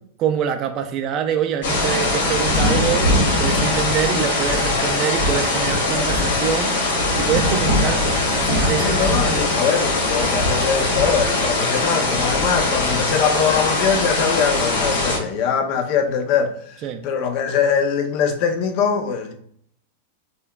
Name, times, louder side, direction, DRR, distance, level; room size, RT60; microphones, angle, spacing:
voice 1, 0.2-9.6 16.8-17.0, right 8 dB, 35° right, 0.3 m, -25 dB
sound 1, 1.6-15.2, left 2 dB, 75° left, 1.3 m, -20 dB
voice 2, 8.8-19.3, left 7 dB, 45° left, 0.5 m, -22 dB
5.4 x 2.2 x 2.3 m
supercardioid pair, 145°, 0 cm